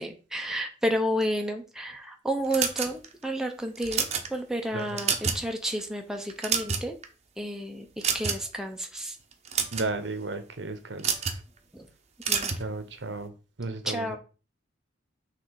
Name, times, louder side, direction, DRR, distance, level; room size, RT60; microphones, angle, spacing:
voice 1, 0.0-4.0 4.3-7.0 7.4-7.9 8.1-9.2 11.7-11.9 12.3-12.5 13.9-14.2, equal, 5° right, 3 dB, 0.6 m, -31 dB
sound 1, 2.5-3.2 3.8-4.3 4.8-5.5 5.8-6.0 6.3-7.1 8.0-8.5 9.3-9.9 11.0-11.4 12.2-12.6, right 6 dB, 35° right, 0.8 m, -28 dB
voice 2, 4.7-5.0 9.7-11.3 12.6-13.3 13.6-14.2, right 3 dB, 70° right, 9 dB, 0.9 m, -34 dB
6.1 x 3.2 x 4.7 m, 0.34 s
head